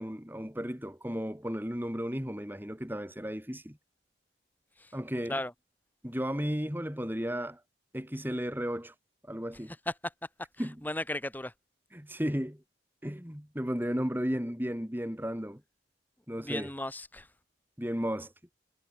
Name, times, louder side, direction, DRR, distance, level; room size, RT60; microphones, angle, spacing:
voice 1, 0.0-3.8 4.9-5.4 6.0-7.6 7.9-8.9 9.3-9.7 10.6-10.8 11.9-12.6 13.0-15.6 16.3-16.7 17.8-18.3, equal, 10° right, 2.8 m, -34 dB
voice 2, 10.8-11.5 16.4-17.3, left 1 dB, 10° left, 3.0 m, -35 dB
head